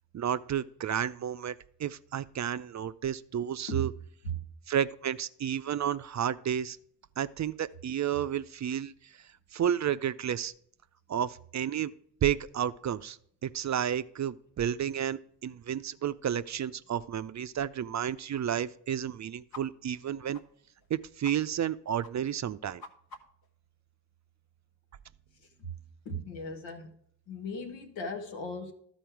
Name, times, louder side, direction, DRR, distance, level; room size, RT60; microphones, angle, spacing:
voice 1, 0.1-3.9 4.7-6.8 7.2-8.9 9.5-10.5 11.1-11.9 12.2-13.2 13.4-20.4 20.9-22.8, right 9 dB, 40° right, 0.5 m, -31 dB
sound 1, 19.5-19.6 19.9-20.0 20.3-20.4 20.8-20.9 21.2-21.4 21.6-21.7 22.0-22.1 22.4-23.5, left 3 dB, 55° left, 1.3 m, -48 dB
voice 2, 25.4-25.7 26.0-26.9 27.3-28.7, right 2 dB, 85° left, 1.3 m, -36 dB
12.5 x 4.3 x 4.6 m
supercardioid pair, 45°, 44 cm